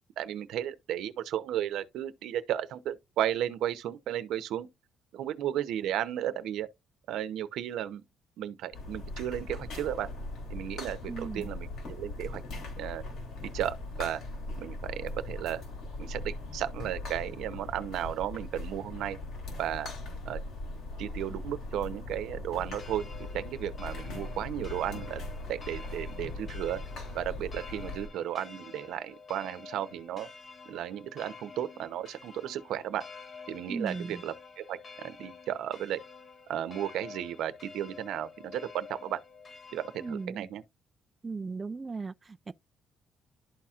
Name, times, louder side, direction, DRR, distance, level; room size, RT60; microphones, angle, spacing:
voice 1, 0.2-4.7 5.1-6.7 7.1-8.0 8.4-10.1 10.5-12.4 12.8-13.0 13.4-14.2 14.6-15.6 16.0-19.2 19.6-19.9 20.2-20.4 21.0-23.1 23.3-25.2 25.5-26.8 27.1-30.3 30.7-33.0 33.5-36.0 36.5-39.2 39.7-40.6, right 11 dB, 80° right, 0.8 m, -34 dB
sound 1, 8.7-28.1, left 2 dB, 80° left, 3.7 m, -40 dB
voice 2, 11.1-11.5 33.7-34.2 40.0-40.5 41.2-42.5, right 4 dB, 25° right, 0.3 m, -37 dB
sound 2, 22.6-40.3, left 5 dB, 40° left, 1.0 m, -49 dB
12.0 x 4.2 x 2.4 m
cardioid pair, 95°, 0 cm